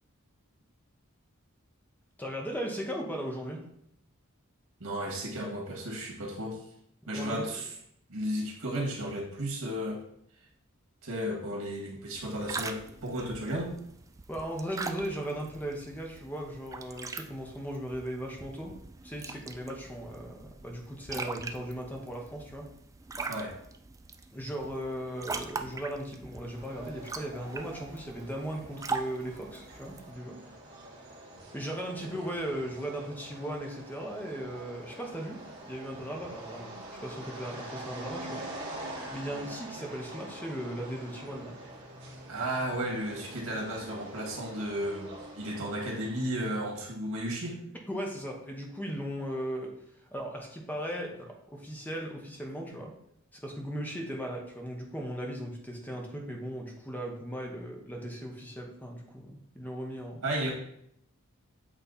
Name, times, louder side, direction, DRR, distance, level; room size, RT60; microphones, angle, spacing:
voice 1, 2.2-3.6 7.1-7.5 14.3-18.8 19.0-22.7 24.3-30.4 31.5-35.4 35.6-36.7 37.0-38.4 39.1-41.6 47.9-49.7 50.1-52.9 53.3-60.2, equal, 10° left, 0 dB, 1.0 m, -37 dB
voice 2, 4.8-6.6 7.1-7.7 8.1-10.0 11.0-13.7 23.3-23.5 32.0-32.1 42.3-47.6 60.2-60.5, right 1 dB, 85° right, -1 dB, 1.9 m, -34 dB
sound 1, 12.1-30.1, right 4 dB, 15° right, 0.3 m, -42 dB
sound 2, 26.5-46.2, right 1 dB, 55° right, 1.8 m, -45 dB
8.2 x 3.2 x 4.1 m, 0.72 s
head